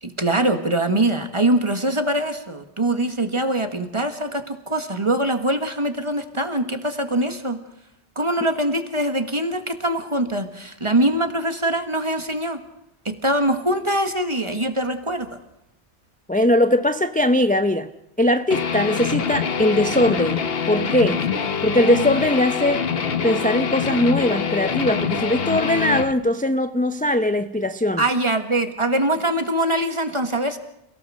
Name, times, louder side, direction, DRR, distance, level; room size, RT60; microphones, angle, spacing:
voice 1, 0.0-7.6 8.2-12.6 13.1-15.3 28.0-30.6, right 1 dB, 25° right, 1.8 m, -23 dB
voice 2, 16.3-17.9 18.2-21.2 21.6-22.8 23.2-28.0, left 1 dB, 10° left, 0.6 m, -20 dB
Guitar, 18.5-26.1, left 6 dB, 60° left, 1.3 m, -25 dB
29.5 x 17.0 x 6.5 m
omnidirectional pair, 1.1 m